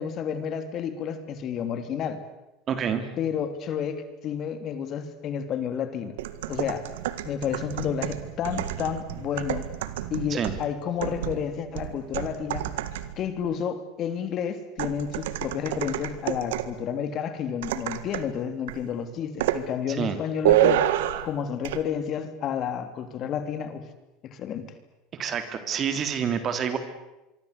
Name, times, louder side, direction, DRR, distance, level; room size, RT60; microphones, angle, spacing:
voice 1, 0.0-2.2 3.2-6.2 6.5-6.9 7.2-9.7 10.1-12.7 13.2-20.9 21.2-23.8 24.3-24.6, left 8 dB, 45° left, 9 dB, 3.1 m, -31 dB
voice 2, 2.7-3.0 10.3-10.5 19.9-20.2 25.2-26.8, right 7 dB, 40° right, 9 dB, 3.6 m, -27 dB
sound 1, 6.2-13.3 14.8-16.8 17.6-18.3 18.7-18.9 19.4-19.7 20.4-21.3 21.6-21.8, right 12 dB, 85° right, 1.8 m, -28 dB
25.5 x 24.0 x 8.4 m, 0.99 s
supercardioid pair, 115°, 0 cm